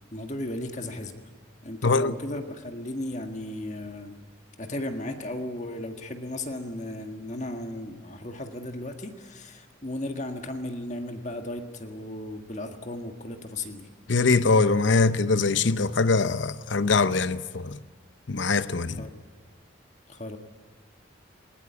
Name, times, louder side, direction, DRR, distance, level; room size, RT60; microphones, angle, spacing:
voice 1, 0.1-1.1 1.6-4.1 4.6-13.9 19.0-19.2 20.1-20.4, left 1 dB, 35° left, 1.7 m, -35 dB
voice 2, 1.8-2.1 14.1-17.8 18.3-19.1, left 4 dB, 70° left, 0.7 m, -23 dB
21.0 x 19.5 x 9.5 m
head